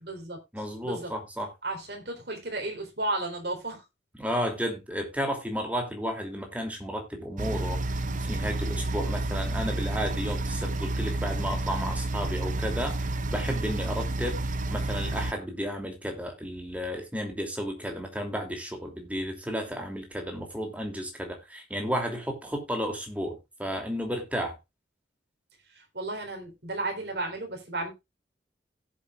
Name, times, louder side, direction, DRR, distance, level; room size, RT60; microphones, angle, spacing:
voice 1, 0.0-0.4 0.8-1.1 1.6-3.8 25.9-27.9, right 2 dB, 60° right, 3.9 m, -33 dB
voice 2, 0.5-1.5 4.2-14.4 14.7-24.6, equal, 10° right, 2.8 m, -33 dB
sound 1, 7.4-15.3, right 2 dB, 45° right, 0.8 m, -30 dB
17.0 x 7.5 x 2.4 m
head